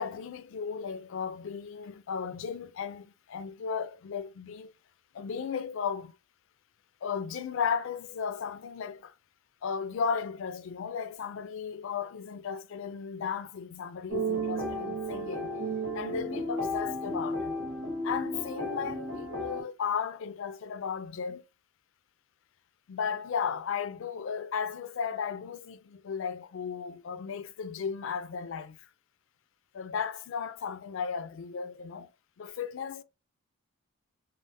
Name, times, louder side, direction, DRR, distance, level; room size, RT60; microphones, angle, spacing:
voice 1, 0.0-4.7 5.1-6.1 7.0-9.1 9.6-15.5 15.9-17.6 18.0-21.4 22.9-28.8 29.7-32.1 32.4-33.0, left 6 dB, 60° left, 0.3 m, -35 dB
sound 1, 14.1-19.6, right 1 dB, 85° right, 1.1 m, -33 dB
3.2 x 2.0 x 2.6 m
head